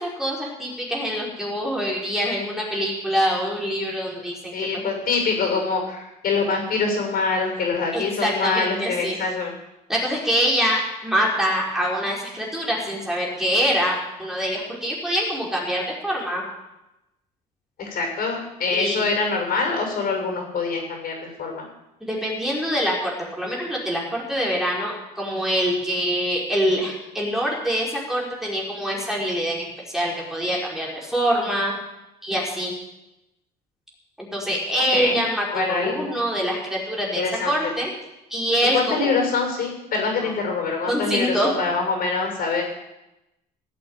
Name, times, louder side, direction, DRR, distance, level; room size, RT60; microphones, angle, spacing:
voice 1, 0.0-4.9 7.9-9.2 9.9-16.4 18.7-19.1 22.0-23.1 23.4-31.7 32.2-32.7 34.3-37.9 38.3-39.1 40.2-40.3 40.9-41.5, equal, ahead, -4 dB, 4.9 m, -25 dB
voice 2, 4.5-9.5 17.8-21.7 34.9-35.2 35.5-36.1 37.2-37.7 38.7-42.6, left 4 dB, 60° left, 2 dB, 6.9 m, -25 dB
17.0 x 8.7 x 9.0 m, 0.94 s
cardioid pair, 110°, 17 cm